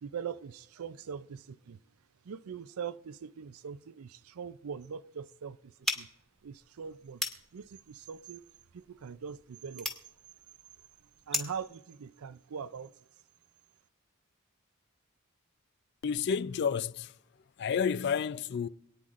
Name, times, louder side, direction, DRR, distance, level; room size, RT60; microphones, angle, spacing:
voice 1, 0.0-1.8 2.2-6.1 6.4-7.2 7.5-8.5 8.7-9.9 11.3-12.9, right 7 dB, 80° right, 0.4 m, -42 dB
sound 1, 5.8-11.7, left 1 dB, ahead, 1.3 m, -39 dB
voice 2, 16.0-17.1 17.6-18.7, left 6 dB, 50° left, 0.4 m, -30 dB
27.0 x 9.3 x 2.5 m
head